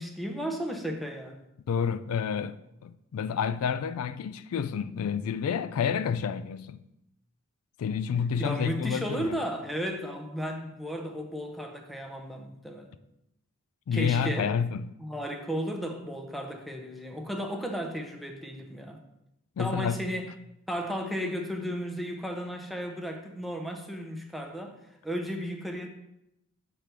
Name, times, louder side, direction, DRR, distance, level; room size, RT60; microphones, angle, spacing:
voice 1, 0.0-1.4 8.4-12.9 13.9-14.6 15.0-19.0 19.6-20.3 20.7-24.8 25.0-25.9, equal, ahead, 0.6 m, -34 dB
voice 2, 1.7-2.6 2.8-6.8 7.8-9.4 13.9-14.9 19.6-20.0, left 7 dB, 75° left, 0.3 m, -29 dB
6.6 x 3.4 x 5.9 m
head